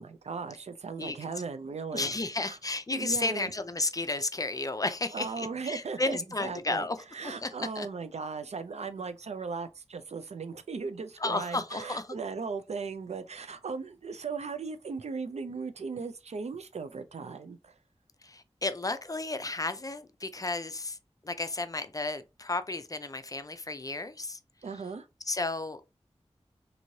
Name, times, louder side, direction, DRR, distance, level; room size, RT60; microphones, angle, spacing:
voice 1, 0.0-2.1 2.4-2.6 2.9-3.5 5.1-6.9 7.1-17.7 24.6-25.1, right 4 dB, 75° right, 0.4 m, -37 dB
voice 2, 1.0-1.3 1.9-7.0 7.2-7.9 11.2-12.1 18.2-21.0 21.2-24.4 25.3-25.8, left 2 dB, 30° left, 0.4 m, -33 dB
3.0 x 2.6 x 2.7 m
wide cardioid pair, 45°, 11 cm